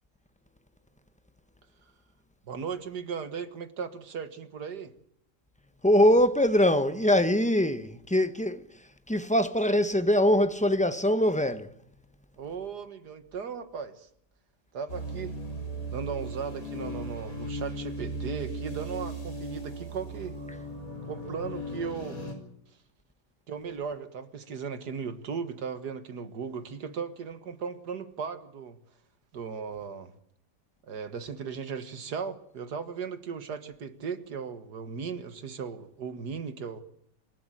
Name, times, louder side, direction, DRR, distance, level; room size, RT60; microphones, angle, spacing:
voice 1, 2.5-4.9 12.4-14.1 14.7-15.4 15.9-20.3 21.0-22.3 23.5-28.8 29.3-30.1 30.9-36.8, right 6 dB, 70° right, 2.0 m, -37 dB
voice 2, 5.8-11.7, left 1 dB, 5° left, 0.7 m, -23 dB
sound 1, 14.9-22.3, right 1 dB, 50° left, 5.1 m, -37 dB
27.0 x 12.5 x 9.1 m
omnidirectional pair, 1.8 m